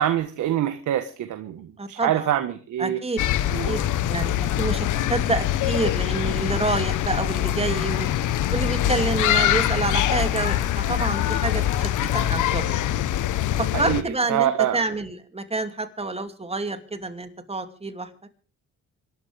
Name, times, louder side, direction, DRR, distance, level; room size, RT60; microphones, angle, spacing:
voice 1, 0.0-3.0 3.5-3.8 13.7-14.8, right 11 dB, 75° right, 8 dB, 1.5 m, -25 dB
voice 2, 1.8-2.3 2.8-3.2 3.7-3.8 4.1-8.1 8.5-12.8 13.6-18.1, right 3 dB, 20° right, 8 dB, 2.7 m, -28 dB
sound 1, 3.2-14.0, left 12 dB, 80° left, 1.2 m, -24 dB
26.5 x 12.0 x 3.5 m, 0.39 s
cardioid pair, 90°, 30 cm